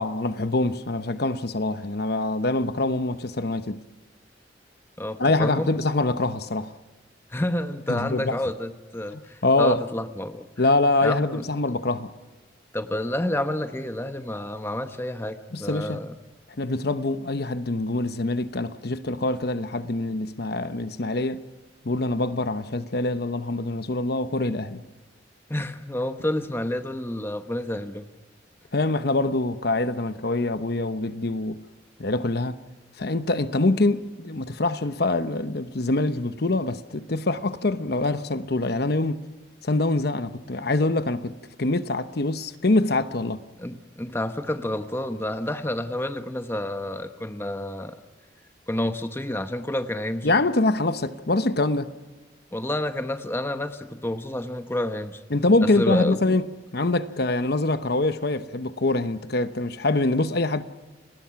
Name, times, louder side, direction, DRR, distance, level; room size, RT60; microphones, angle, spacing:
voice 1, 0.0-3.8 5.2-6.7 7.9-8.4 9.4-9.8 10.6-12.1 15.5-16.0 16.6-21.4 21.8-24.8 28.7-31.6 32.0-32.6 33.0-39.2 39.6-41.3 41.6-43.4 50.2-51.9 55.3-56.5 56.7-60.6, left 2 dB, 55° left, 1.0 m, -24 dB
voice 2, 5.0-5.7 7.3-10.5 11.0-11.4 12.7-16.1 25.5-28.1 43.6-48.0 48.7-50.3 52.5-55.2 55.6-56.3, left 1 dB, 15° left, 1.0 m, -29 dB
29.5 x 20.0 x 5.9 m
head